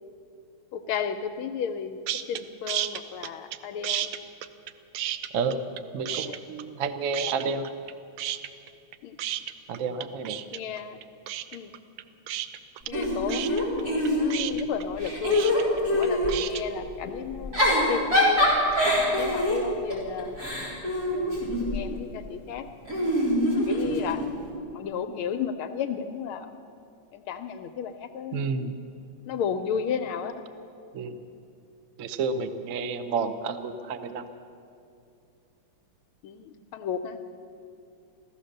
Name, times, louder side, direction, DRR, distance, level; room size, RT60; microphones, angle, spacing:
voice 1, 0.7-2.0 2.3-4.1 6.1-6.4 9.0-9.2 10.5-11.0 11.5-11.7 12.9-15.4 15.9-18.4 19.2-20.4 21.1-22.7 23.7-24.2 24.7-26.5 27.1-28.7 29.3-30.4 31.3-31.4 36.2-37.2, left 7 dB, 80° left, 8 dB, 1.4 m, -33 dB
sound 1, 2.1-2.4 2.7-3.6 3.8-5.8 6.1-6.9 7.1-7.9 8.2-16.6, right 12 dB, 85° right, 1.6 m, -32 dB
voice 2, 5.9-7.7 9.7-10.4 28.3-28.8 30.9-31.2 32.0-34.2, right 5 dB, 70° right, 9 dB, 0.7 m, -30 dB
Giggle / Chuckle chortle, 12.9-14.5 15.0-16.4 17.3-21.8 22.9-24.3, left 1 dB, 45° right, 4.5 m, -24 dB
15.0 x 14.5 x 6.6 m, 2.6 s
omnidirectional pair, 2.4 m